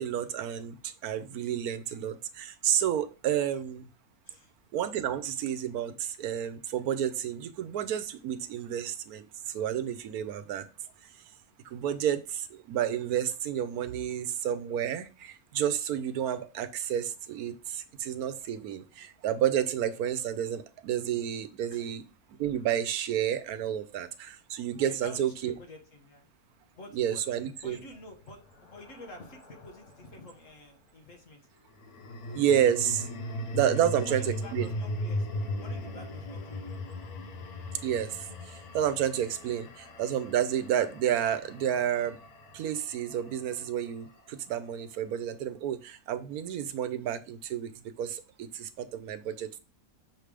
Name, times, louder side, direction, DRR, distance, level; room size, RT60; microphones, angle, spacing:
voice 1, 0.0-3.9 4.7-10.6 11.6-22.0 22.4-25.5 26.9-27.8 32.3-33.1 33.5-34.7 37.8-42.2 42.5-47.7 48.0-49.6, right 10 dB, 85° right, 12 dB, 1.2 m, -30 dB
voice 2, 24.8-26.3 26.7-27.2 27.6-31.5 33.9-35.3 35.6-36.6, left 2 dB, 60° left, 3 dB, 1.7 m, -49 dB
sound 1, 27.6-30.1 31.7-44.0, left 1 dB, 80° left, 1.6 m, -38 dB
6.4 x 3.4 x 4.9 m, 0.33 s
omnidirectional pair, 1.6 m